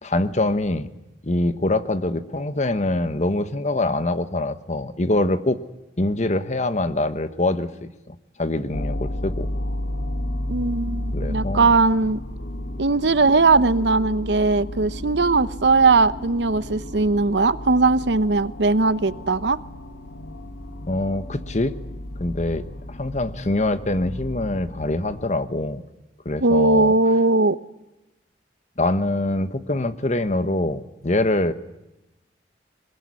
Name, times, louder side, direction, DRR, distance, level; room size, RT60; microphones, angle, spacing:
voice 1, 0.0-0.9 1.2-5.6 6.0-9.5 11.1-11.7 20.9-21.7 22.2-25.8 26.2-26.9 28.8-31.5, left 2 dB, 40° left, 12 dB, 1.2 m, -24 dB
sound 1, 8.7-25.3, left 1 dB, 75° left, 1.6 m, -32 dB
voice 2, 10.5-12.2 12.8-19.6 26.4-27.6, right 3 dB, 75° right, 16 dB, 0.8 m, -19 dB
21.5 x 21.0 x 9.7 m, 0.95 s
head